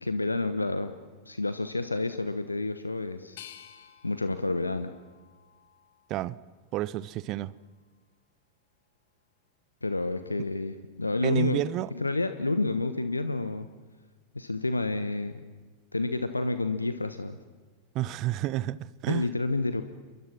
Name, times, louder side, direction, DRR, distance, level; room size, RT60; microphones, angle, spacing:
voice 1, 0.0-0.9 1.2-3.4 4.0-4.9 9.8-11.6 11.9-13.7 14.3-15.4 15.9-17.4 19.1-19.8, left 2 dB, 80° left, 1.0 m, -29 dB
sound 1, 3.4-6.3 6.8-7.7, left 10 dB, 55° left, 1.7 m, -53 dB
voice 2, 6.7-7.5 11.2-11.9 17.9-19.3, right 15 dB, 40° right, 0.8 m, -30 dB
29.5 x 23.5 x 6.1 m
figure-of-eight pair, 90°, 0 cm